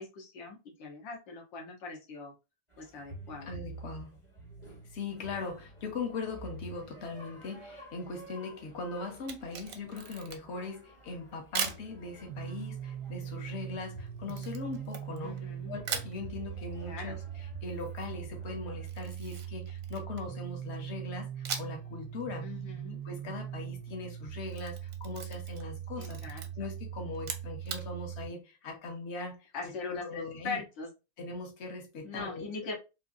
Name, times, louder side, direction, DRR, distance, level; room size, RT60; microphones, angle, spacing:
voice 1, 0.0-2.3 2.8-3.5 15.2-15.8 16.8-17.2 22.4-23.0 26.0-26.7 29.5-30.9 32.0-32.7, left 4 dB, 80° left, 1.8 m, -41 dB
sound 1, 2.7-18.9, right 2 dB, 25° left, 0.8 m, -50 dB
voice 2, 3.4-4.2 4.9-15.3 15.7-17.2 17.6-22.5 23.0-30.6 31.2-32.7, left 3 dB, 55° left, 0.8 m, -40 dB
Camera, 9.1-10.6 11.5-11.9 14.3-15.5 15.8-16.2 18.8-20.3 21.4-21.9 22.2-22.3 24.3-25.7 26.0-26.5 27.1-27.9, right 7 dB, 65° right, 0.8 m, -39 dB
sound 2, 12.3-28.3, right 10 dB, 90° right, 1.3 m, -41 dB
3.8 x 2.7 x 2.5 m
omnidirectional pair, 2.0 m